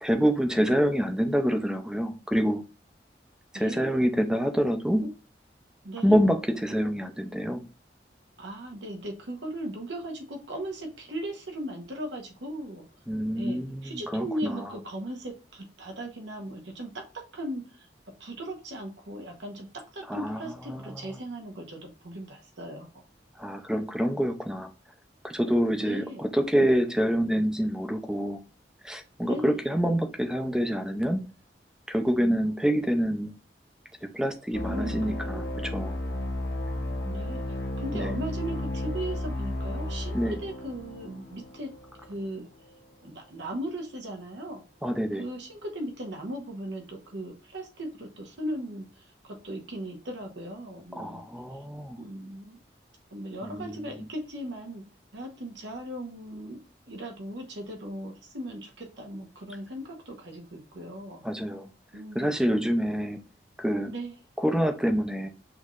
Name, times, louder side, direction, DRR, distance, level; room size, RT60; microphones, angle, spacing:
voice 1, 0.0-2.6 3.5-5.1 6.0-7.6 13.1-14.7 20.1-20.4 20.7-21.1 23.4-24.7 25.2-28.4 28.8-31.3 31.9-33.3 34.1-36.0 37.9-38.1 40.1-40.4 44.8-45.2 51.0-52.0 53.4-54.1 61.2-61.7 62.1-63.2 63.6-63.9 64.4-65.3, equal, 5° right, 0.5 m, -26 dB
voice 2, 3.5-3.9 5.0-5.1 5.8-6.2 8.4-12.8 13.4-17.0 17.3-17.9 18.2-19.7 19.9-23.0 25.8-26.2 29.2-29.8 32.2-32.9 34.7-35.4 37.0-41.7 42.1-42.5 43.0-44.6 45.2-51.2 52.0-52.6 53.1-54.8 55.1-56.6 56.9-61.2 61.9-62.3 63.9-64.1, right 1 dB, 85° right, 1.0 m, -38 dB
sound 1, 34.5-42.1, left 1 dB, 75° left, 0.8 m, -33 dB
6.2 x 3.1 x 2.4 m
head